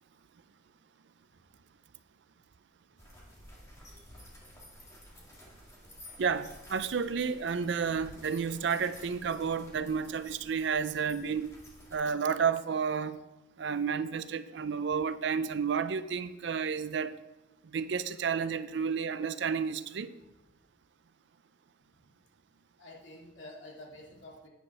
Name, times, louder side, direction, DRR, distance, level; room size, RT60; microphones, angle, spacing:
sound 1, 3.0-12.0, left 1 dB, 15° left, 2.0 m, -53 dB
voice 1, 6.2-11.5 11.9-13.2 13.6-17.2 17.7-20.1, right 6 dB, 70° right, 0.5 m, -31 dB
voice 2, 22.8-24.5, left 1 dB, 80° left, 2.3 m, -49 dB
9.2 x 5.1 x 5.5 m
head